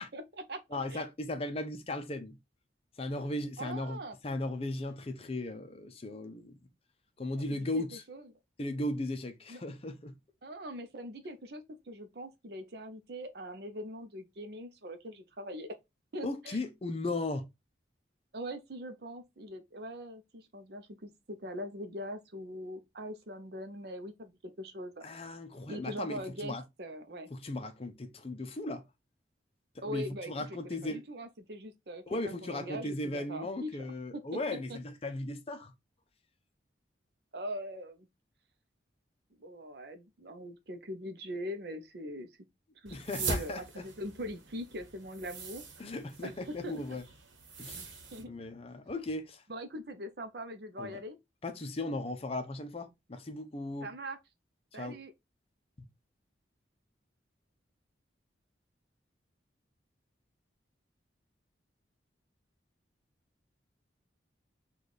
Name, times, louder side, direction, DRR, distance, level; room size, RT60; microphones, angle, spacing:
voice 1, 0.1-0.6 0.9-1.0 3.6-4.2 7.4-8.3 9.5-9.6 10.4-15.7 16.1-16.6 18.3-25.1 25.7-27.3 29.8-33.7 34.1-34.4 34.7-34.8 37.3-38.1 39.4-42.3 42.8-45.6 46.2-46.3 46.6-47.0 48.1-48.3 49.5-51.2 53.8-54.2 54.7-55.1, equal, 55° right, 0.6 m, -42 dB
voice 2, 0.7-2.4 3.0-4.0 4.2-6.6 7.2-8.0 8.6-10.1 16.2-17.5 25.0-26.6 27.3-28.8 29.9-31.0 32.1-35.7 42.9-43.8 45.8-47.0 47.6-47.9 48.3-49.4 50.8-51.0 51.4-53.9 54.7-55.0, left 2 dB, 30° left, 0.5 m, -37 dB
sound 1, 42.9-48.2, right 3 dB, 90° right, 1.0 m, -41 dB
4.0 x 2.3 x 3.2 m
head